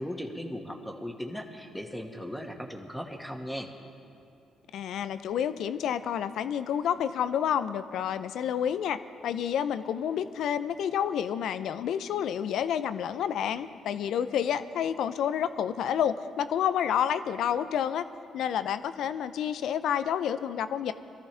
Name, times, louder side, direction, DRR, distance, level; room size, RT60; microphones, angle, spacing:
voice 1, 0.0-3.7, equal, 5° left, 2 dB, 2.0 m, -37 dB
voice 2, 4.7-18.1 18.3-20.9, left 9 dB, 70° left, 12 dB, 0.6 m, -29 dB
23.0 x 14.0 x 3.5 m, 2.7 s
hypercardioid pair, 55°, 0 cm